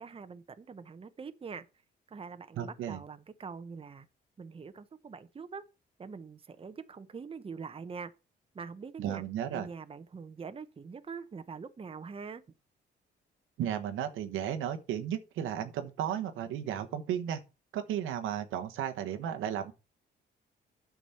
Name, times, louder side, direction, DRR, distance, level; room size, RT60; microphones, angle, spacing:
voice 1, 0.0-1.7 2.1-4.1 4.4-5.6 6.0-8.1 8.5-9.2 9.5-12.4, right 5 dB, 30° right, 0.8 m, -44 dB
voice 2, 2.6-3.0 9.0-9.7 13.6-17.4 17.7-19.7, right 10 dB, 90° right, 1.2 m, -34 dB
9.2 x 6.0 x 5.7 m
cardioid pair, 90°, 20 cm